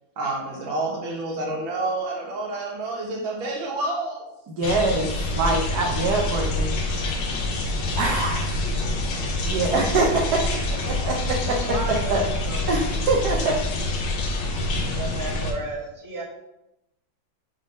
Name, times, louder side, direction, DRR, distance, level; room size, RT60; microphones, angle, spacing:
voice 1, 0.2-4.2, right 2 dB, 85° right, -1 dB, 2.1 m, -29 dB
voice 2, 4.5-6.7 8.0-8.5 9.5-10.2 10.9-11.1 11.9-12.2 12.7-13.6, right 3 dB, 65° right, 0 dB, 1.2 m, -24 dB
sound 1, 4.6-15.5, left 2 dB, 75° left, 1.6 m, -26 dB
voice 3, 11.6-12.8 14.8-16.2, right 2 dB, 10° right, -4 dB, 1.3 m, -34 dB
6.1 x 3.7 x 5.3 m, 0.88 s
omnidirectional pair, 2.1 m